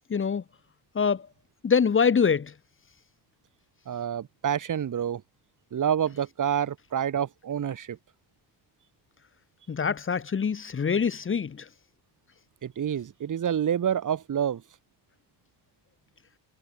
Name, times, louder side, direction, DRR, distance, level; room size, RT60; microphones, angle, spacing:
voice 1, 0.1-0.4 0.9-1.3 1.6-2.5 9.7-11.7, left 6 dB, 30° left, 1.8 m, -24 dB
voice 2, 3.9-5.2 5.7-8.0 12.6-14.6, right 9 dB, 45° right, 4.0 m, -28 dB
cardioid pair, 130°, 41 cm